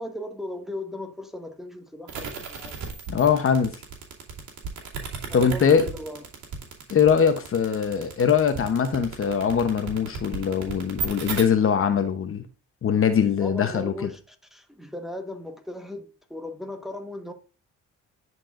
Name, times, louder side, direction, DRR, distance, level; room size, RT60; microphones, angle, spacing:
voice 1, 0.0-2.8 5.3-6.2 13.4-17.3, left 1 dB, ahead, 1.2 m, -37 dB
sound 1, 2.1-11.4, right 5 dB, 70° right, 2.5 m, -34 dB
voice 2, 3.1-3.7 5.3-5.9 6.9-12.4 12.8-14.1, left 7 dB, 45° left, 0.9 m, -22 dB
10.5 x 4.6 x 2.5 m
cardioid pair, 90°, 30 cm